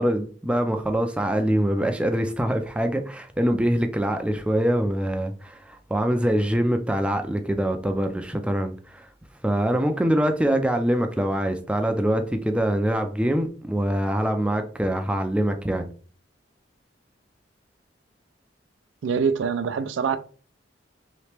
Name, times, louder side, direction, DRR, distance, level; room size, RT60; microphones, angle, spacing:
voice 1, 0.0-9.1 9.4-15.9, right 1 dB, 5° right, 0.3 m, -24 dB
voice 2, 19.0-20.2, right 6 dB, 85° right, 0.4 m, -24 dB
3.2 x 2.9 x 3.3 m
head